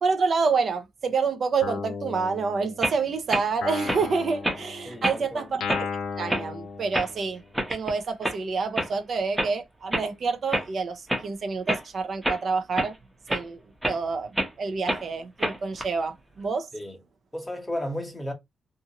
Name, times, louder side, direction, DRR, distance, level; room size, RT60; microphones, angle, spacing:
voice 1, 0.0-5.8 6.2-7.4 7.7-12.9 13.3-13.6 13.9-14.3 14.6-16.7, right 4 dB, 55° right, 0.6 m, -28 dB
Guitar, 1.6-3.1 3.6-7.5, left 5 dB, 90° left, 0.5 m, -36 dB
sound 1, 2.8-3.0 3.3-3.4 3.9-4.0 4.4-4.6 5.0-5.2 5.7-5.9 6.3-6.5 6.9-7.1 7.5-7.9 8.2-8.4 8.8-8.9 9.4-9.5 9.9-10.0 10.5-10.7 11.1-11.2 11.7-11.8 12.2-12.4 12.8-12.9 13.3-13.4 13.8-14.0 14.4-14.5 14.9-15.0 15.4-15.8, right 1 dB, 10° right, 0.9 m, -27 dB
voice 2, 4.8-5.5 16.7-17.0 17.3-18.3, left 1 dB, 15° left, 1.0 m, -33 dB
2.6 x 2.4 x 2.8 m
cardioid pair, 110°, 0 cm